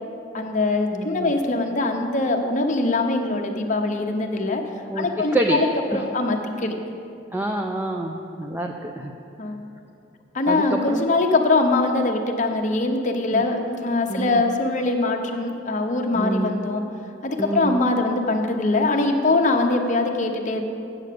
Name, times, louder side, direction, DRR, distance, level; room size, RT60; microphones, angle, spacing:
voice 1, 0.3-4.6 5.0-6.8 9.4-9.6 10.3-16.8 17.2-20.6, left 2 dB, 40° left, 3 dB, 0.9 m, -22 dB
voice 2, 0.9-1.3 4.9-5.1 5.3-5.6 5.9-6.0 7.3-9.1 10.5-11.1 13.3-13.4 14.1-14.4 16.1-16.7 17.4-17.9, right 2 dB, 10° right, 2 dB, 0.4 m, -27 dB
8.1 x 7.4 x 6.7 m, 2.6 s
head